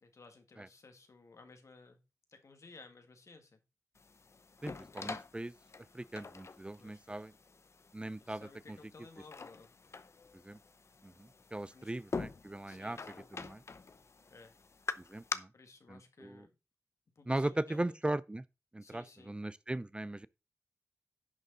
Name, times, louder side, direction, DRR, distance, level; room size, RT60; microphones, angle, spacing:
voice 1, 0.0-2.0 2.3-3.6 6.7-7.2 8.2-9.7 11.7-11.9 12.7-13.3 14.3-14.6 15.5-16.5 17.2-18.0 18.8-19.4, left 3 dB, 80° left, 2.0 m, -57 dB
sound 1, 3.9-15.3, left 4 dB, 65° left, 0.7 m, -45 dB
voice 2, 4.6-5.5 5.9-7.3 7.9-8.8 10.4-10.6 11.0-13.0 13.3-13.6 15.0-15.5 15.9-16.5 17.3-18.4 18.7-20.3, right 1 dB, 20° right, 0.4 m, -39 dB
10.5 x 6.4 x 4.0 m
wide cardioid pair, 80°, 5 cm